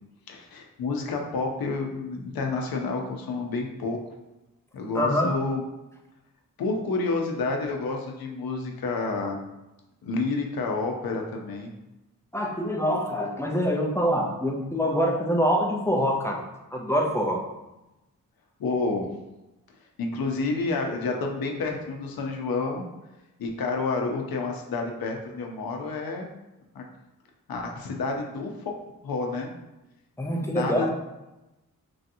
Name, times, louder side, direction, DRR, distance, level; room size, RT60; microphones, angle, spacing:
voice 1, 0.3-4.1 4.7-5.6 6.6-9.4 10.0-11.7 18.6-19.1 20.0-22.8 23.4-26.3 26.7-26.8 27.5-28.7 29.0-29.5 30.4-30.9, left 3 dB, 90° left, 2 dB, 0.6 m, -29 dB
voice 2, 4.9-5.3 12.3-16.4 16.7-17.4 30.2-30.9, equal, 10° left, 0 dB, 0.3 m, -25 dB
3.1 x 2.7 x 2.6 m, 0.99 s
wide cardioid pair, 160°, 35 cm